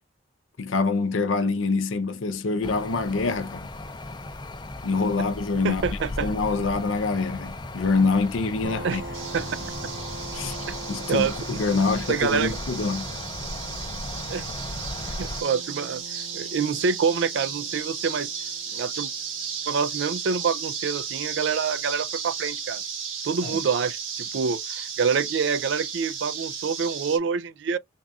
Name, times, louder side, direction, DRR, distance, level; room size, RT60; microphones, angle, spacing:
voice 1, 0.6-3.7 4.8-9.0 10.3-10.6 10.9-13.1 23.4-23.5, left 4 dB, 80° left, 0.6 m, -25 dB
sound 1, 2.6-15.4, left 2 dB, 20° left, 0.5 m, -36 dB
voice 2, 5.6-6.3 8.8-9.0 9.3-9.5 10.7-10.8 11.1-11.6 12.1-12.6 14.3-14.4 15.2-16.0 16.3-18.3 18.7-19.1 19.7-22.8 23.2-27.8, right 5 dB, 65° right, 0.4 m, -26 dB
sound 2, 8.6-21.9, right 2 dB, 45° right, 1.3 m, -44 dB
sound 3, 9.1-27.2, right 7 dB, 90° right, 1.3 m, -34 dB
3.6 x 2.4 x 3.5 m
head